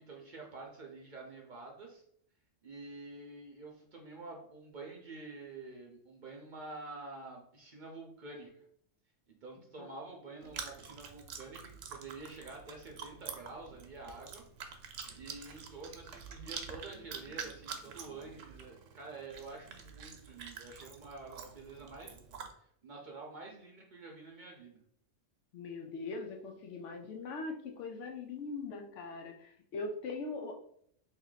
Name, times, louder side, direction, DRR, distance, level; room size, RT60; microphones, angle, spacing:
voice 1, 0.0-2.0 2.6-8.5 9.3-14.4 14.9-22.2 22.6-24.8, right 3 dB, 50° right, -1 dB, 0.7 m, -48 dB
Chewing mastication, 10.4-22.5, right 6 dB, 75° right, 0.9 m, -47 dB
voice 2, 25.5-30.5, left 3 dB, 75° left, 4 dB, 0.9 m, -41 dB
3.0 x 2.8 x 3.8 m, 0.66 s
omnidirectional pair, 1.3 m